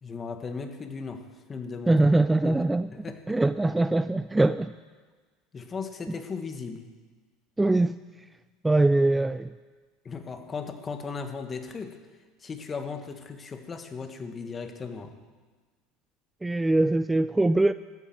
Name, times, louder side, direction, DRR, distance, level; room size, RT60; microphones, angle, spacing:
voice 1, 0.0-2.0 2.4-2.6 2.9-3.4 5.5-6.9 10.0-12.0 12.4-15.1, left 5 dB, 25° left, 7 dB, 1.5 m, -37 dB
voice 2, 1.9-2.9 3.3-4.7 7.6-8.0 8.6-9.5 16.4-17.7, right 2 dB, 10° right, 13 dB, 0.3 m, -22 dB
14.0 x 8.9 x 7.7 m, 1.4 s
supercardioid pair, 105°, 0 cm